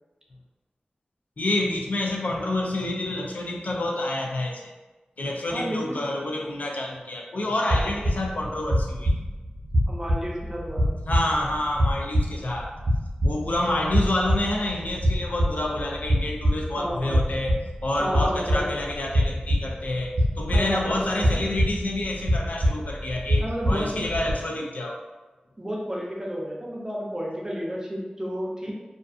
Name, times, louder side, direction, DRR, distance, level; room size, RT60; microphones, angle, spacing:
voice 1, 1.4-4.7 5.2-9.1 11.1-12.7 13.2-25.0, left 1 dB, 70° left, 0 dB, 0.4 m, -28 dB
voice 2, 5.5-6.0 9.9-10.9 13.6-13.8 16.8-17.3 18.0-18.7 20.5-20.8 21.1-21.4 23.4-24.0 25.6-28.7, equal, 25° right, -3 dB, 0.6 m, -31 dB
sound 1, 7.7-24.3, equal, 65° right, 0.7 m, -26 dB
2.5 x 2.4 x 2.4 m, 1.2 s
wide cardioid pair, 55°, 3 cm